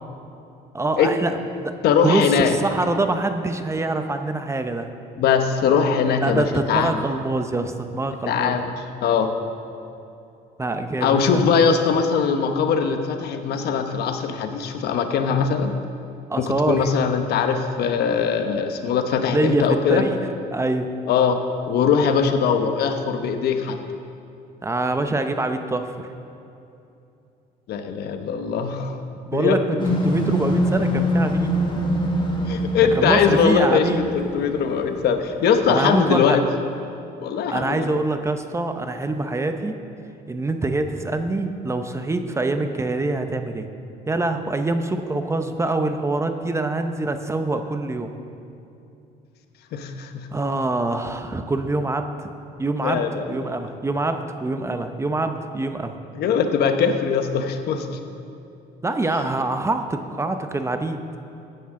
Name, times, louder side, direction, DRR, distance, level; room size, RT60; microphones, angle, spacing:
voice 1, 0.7-1.7 2.0-4.9 6.2-8.6 10.6-11.4 16.3-16.9 19.3-20.2 20.5-20.9 24.6-25.9 29.3-31.5 32.9-34.0 35.7-36.4 37.5-39.8 40.3-43.7 44.1-48.1 50.3-52.1 52.6-56.0 58.8-61.0, right 2 dB, 15° right, 7 dB, 0.7 m, -25 dB
voice 2, 1.8-2.5 5.2-7.0 8.3-8.6 9.0-9.3 11.0-15.7 16.4-20.1 21.1-21.4 21.7-23.8 27.7-29.0 29.3-29.6 32.5-36.4 37.2-38.0 49.7-50.3 52.8-53.3 56.2-58.0, left 6 dB, 70° left, 7 dB, 1.0 m, -21 dB
sound 1, 29.8-35.1, equal, 30° left, 1.6 m, -24 dB
15.5 x 10.0 x 3.7 m, 2.7 s
cardioid pair, 110°, 17 cm